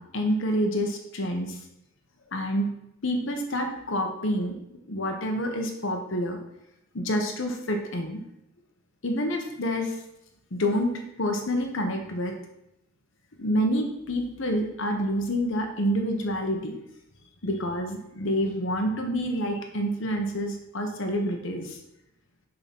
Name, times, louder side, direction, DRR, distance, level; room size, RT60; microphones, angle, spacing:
voice 1, 0.0-1.6 2.3-2.7 3.0-4.6 4.9-6.4 6.9-8.2 9.0-10.0 10.5-12.4 13.4-16.7 17.4-21.8, equal, 65° left, 3 dB, 1.1 m, -28 dB
7.0 x 4.0 x 5.9 m, 0.83 s
head